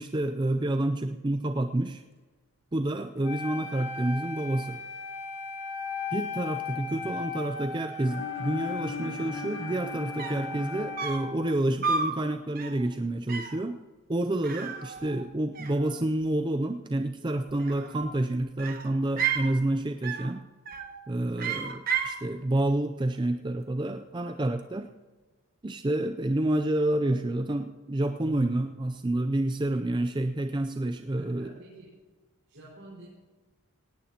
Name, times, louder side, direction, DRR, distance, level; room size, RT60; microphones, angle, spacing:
voice 1, 0.0-2.0 2.7-4.8 6.1-13.8 14.1-20.4 21.1-24.9 25.6-31.6, right 1 dB, 20° right, 7 dB, 0.4 m, -29 dB
Wind instrument woodwind instrument, 3.2-11.5, left 4 dB, 50° left, 2.4 m, -37 dB
sound 1, 8.0-11.9, left 4 dB, 70° left, 3.4 m, -40 dB
sound 2, 9.9-10.0 10.2-10.5 11.0-11.4 11.8-12.2 12.6-12.9 13.3-13.6 14.4-15.3 15.6-16.3 17.5-18.1 18.6-19.5 20.0-20.4 20.7-21.0 21.4-22.2, right 6 dB, 40° right, 1.1 m, -32 dB
voice 2, 28.2-28.5 31.2-32.0 32.5-33.1, right 2 dB, 65° right, -8 dB, 5.1 m, -45 dB
18.5 x 16.5 x 2.9 m, 1.3 s
head